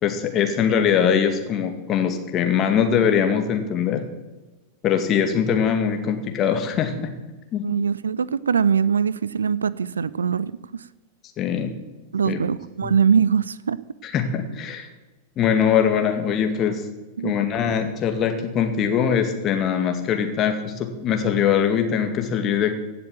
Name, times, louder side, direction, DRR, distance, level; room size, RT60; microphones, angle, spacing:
voice 1, 0.0-4.0 4.8-7.1 7.5-7.6 11.4-11.7 12.3-12.4 12.8-12.9 14.0-14.9 15.4-16.8 17.2-22.7, left 8 dB, 30° left, 5 dB, 2.2 m, -22 dB
voice 2, 7.6-10.8 12.1-13.8 17.2-17.4, right 7 dB, 70° right, 20 dB, 0.5 m, -22 dB
16.5 x 6.9 x 9.2 m, 1.2 s
figure-of-eight pair, 90°, 0 cm